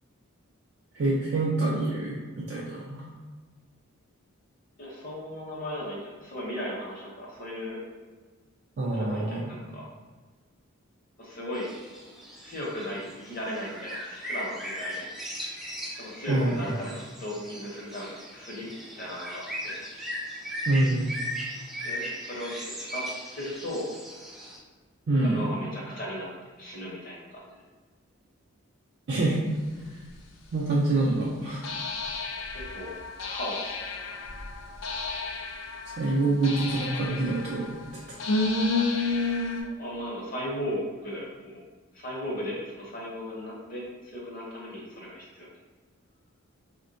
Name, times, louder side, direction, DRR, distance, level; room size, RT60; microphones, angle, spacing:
voice 1, 0.9-3.1 8.8-9.5 16.3-16.7 20.7-21.1 25.1-25.5 29.1-29.4 30.5-31.7 36.0-37.7 38.1-38.2, right 2 dB, 50° right, -5 dB, 0.3 m, -26 dB
voice 2, 4.8-7.8 8.8-9.9 11.2-11.7 12.4-15.1 15.9-19.8 21.8-23.0 23.3-23.9 25.2-26.3 26.6-27.6 32.5-32.9 33.3-34.2 39.6-41.6 41.9-45.5, left 1 dB, 40° left, -4 dB, 0.7 m, -36 dB
sound 1, 11.5-24.6, equal, ahead, 0.5 m, -38 dB
sound 2, 30.1-30.2 31.6-39.6, left 3 dB, 65° left, 0.4 m, -31 dB
3.4 x 2.1 x 2.5 m, 1.4 s
head